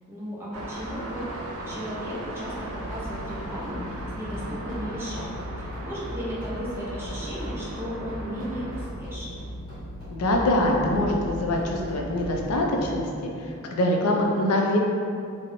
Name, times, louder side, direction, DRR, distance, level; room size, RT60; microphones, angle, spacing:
voice 1, 0.1-9.4, equal, 10° right, -8 dB, 0.5 m, -35 dB
sound 1, 0.5-8.9, right 1 dB, 80° right, 0.4 m, -38 dB
sound 2, 2.4-12.8, equal, 20° left, 0.9 m, -37 dB
voice 2, 10.1-13.1 13.7-14.8, left 1 dB, 80° left, 0 dB, 0.4 m, -23 dB
2.5 x 2.0 x 2.9 m, 2.4 s
head